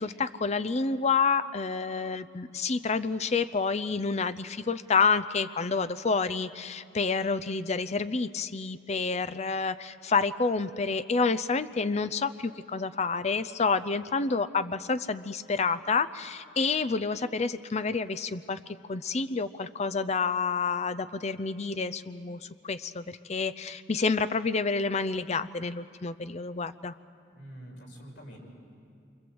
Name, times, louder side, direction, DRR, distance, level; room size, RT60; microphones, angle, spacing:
voice 1, 0.0-18.6 18.9-26.9, left 4 dB, 35° left, 12 dB, 0.6 m, -29 dB
voice 2, 27.3-28.4, equal, 85° left, -1 dB, 5.7 m, -46 dB
28.0 x 25.0 x 7.9 m, 2.3 s
head